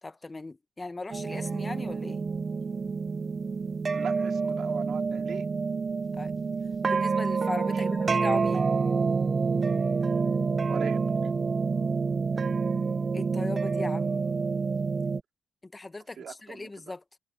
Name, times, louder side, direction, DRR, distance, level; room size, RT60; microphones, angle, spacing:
voice 1, 0.0-2.3 6.2-6.3 6.8-8.7 13.1-14.1 15.6-17.0, left 2 dB, 20° left, 1.0 m, -38 dB
sound 1, 1.1-15.2, right 4 dB, 35° right, 0.7 m, -28 dB
voice 2, 3.9-5.4 7.7-8.1 10.7-11.1 16.2-16.7, right 8 dB, 60° right, 3.6 m, -40 dB
cardioid pair, 90°, 0 cm